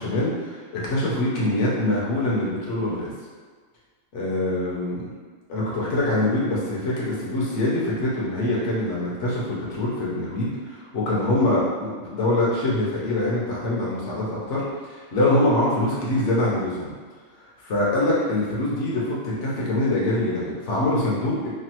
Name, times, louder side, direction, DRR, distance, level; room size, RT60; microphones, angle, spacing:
voice 1, 0.0-3.1 4.1-5.1 5.5-16.9 17.6-21.5, left 1 dB, 65° left, -6 dB, 1.1 m, -24 dB
3.1 x 2.3 x 2.9 m, 1.5 s
omnidirectional pair, 1.4 m